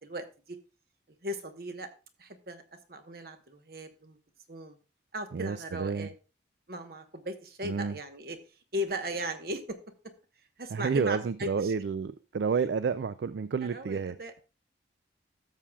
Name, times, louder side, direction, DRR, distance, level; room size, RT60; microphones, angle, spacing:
voice 1, 0.0-0.6 1.2-1.9 2.2-2.6 2.9-4.2 4.5-4.8 5.1-6.1 6.7-8.4 8.7-9.8 10.6-11.7 13.6-14.3, equal, 60° right, 8 dB, 1.1 m, -37 dB
voice 2, 5.3-6.1 7.6-7.9 10.7-14.2, right 5 dB, 75° right, 14 dB, 0.4 m, -30 dB
13.0 x 7.3 x 2.3 m, 0.32 s
head